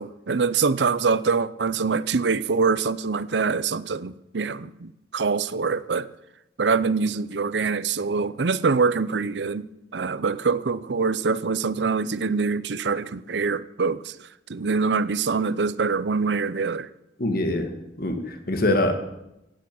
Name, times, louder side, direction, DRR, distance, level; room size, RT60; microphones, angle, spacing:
voice 1, 0.0-6.1 6.6-9.7 9.9-16.9, right 4 dB, 75° right, 0.6 m, -24 dB
voice 2, 17.2-17.7 18.0-18.9, left 1 dB, 55° left, 2.0 m, -23 dB
16.5 x 8.6 x 7.8 m
head